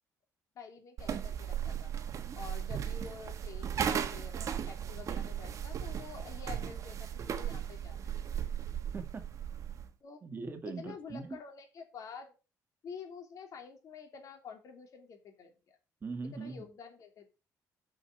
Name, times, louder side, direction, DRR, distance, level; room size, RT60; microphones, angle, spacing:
voice 1, 0.5-1.9 2.3-8.1 10.0-10.2 10.6-12.3 12.8-15.8 16.3-17.3, left 6 dB, 60° left, 4 dB, 3.0 m, -48 dB
sound 1, 1.0-9.9, right 8 dB, 55° right, 1.3 m, -36 dB
voice 2, 8.9-9.3 10.2-11.4 16.0-16.7, right 4 dB, 35° right, 6 dB, 1.8 m, -41 dB
7.0 x 6.4 x 7.7 m, 0.32 s
cardioid pair, 110°, 6 cm